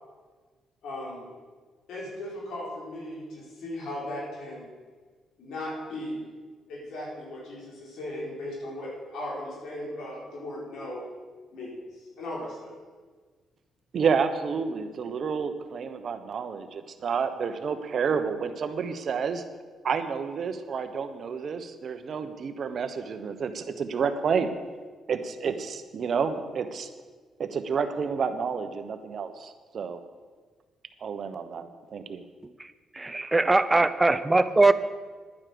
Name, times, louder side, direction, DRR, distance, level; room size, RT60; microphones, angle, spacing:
voice 1, 0.8-1.3 1.9-4.7 5.4-6.3 6.7-11.1 11.5-12.7, left 1 dB, 75° left, -4 dB, 4.6 m, -37 dB
voice 2, 13.9-19.4 19.8-24.5 25.1-26.9 27.4-30.0 31.0-32.2, right 6 dB, 55° right, 9 dB, 1.1 m, -30 dB
voice 3, 32.9-34.7, right 2 dB, 15° right, 12 dB, 0.7 m, -21 dB
11.0 x 9.8 x 6.9 m, 1.4 s
cardioid pair, 90°, 0 cm